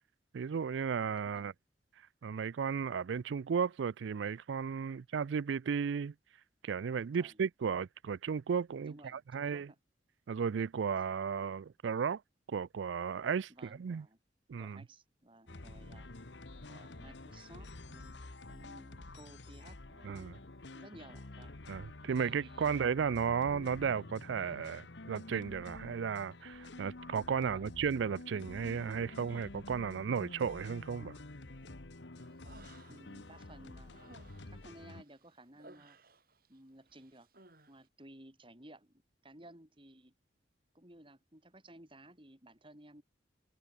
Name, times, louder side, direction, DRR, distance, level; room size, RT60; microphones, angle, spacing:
voice 1, 0.3-1.5 2.2-6.1 6.6-9.7 10.3-12.2 12.5-14.1 14.5-14.8 20.0-20.4 21.7-31.1, right 6 dB, 85° right, 0.4 m, -34 dB
voice 2, 8.8-9.8 13.5-14.2 14.6-16.1 16.7-20.4 20.7-21.6 22.2-23.1 27.4-27.7 32.6-34.2 34.5-36.0 36.5-37.3 37.7-40.1 40.7-43.0, right 1 dB, 30° right, 5.6 m, -57 dB
sound 1, 15.5-35.0, left 2 dB, 75° left, 1.4 m, -49 dB
Human voice, 32.2-33.3 33.6-36.6 36.9-37.7, right 2 dB, 55° right, 7.0 m, -59 dB
head